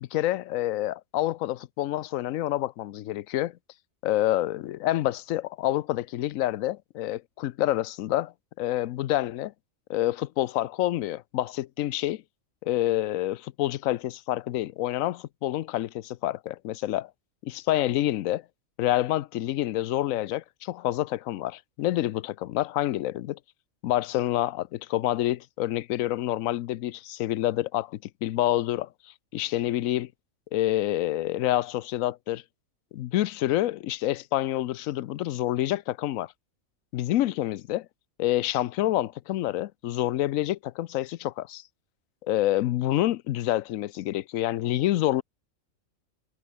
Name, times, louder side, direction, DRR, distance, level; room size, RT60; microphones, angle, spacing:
voice 1, 0.1-3.5 4.0-9.5 9.9-12.2 12.6-17.1 17.4-18.4 18.8-23.4 23.8-28.9 29.3-30.1 30.5-32.4 32.9-36.3 36.9-37.9 38.2-41.6 42.2-45.2, left 14 dB, 80° left, 1.0 m, -27 dB
omnidirectional pair, 1.4 m